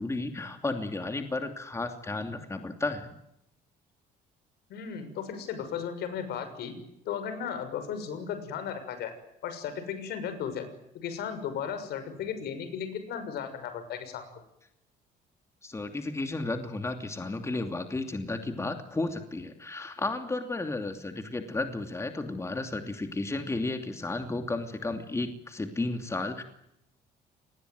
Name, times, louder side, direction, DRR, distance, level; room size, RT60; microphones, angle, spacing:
voice 1, 0.0-3.1 15.6-26.4, left 2 dB, 15° left, 6 dB, 2.8 m, -33 dB
voice 2, 4.7-6.8 7.0-9.1 9.4-10.7 10.9-14.2, left 7 dB, 75° left, 10 dB, 6.4 m, -35 dB
27.5 x 20.0 x 9.5 m, 0.81 s
cardioid pair, 110°, 17 cm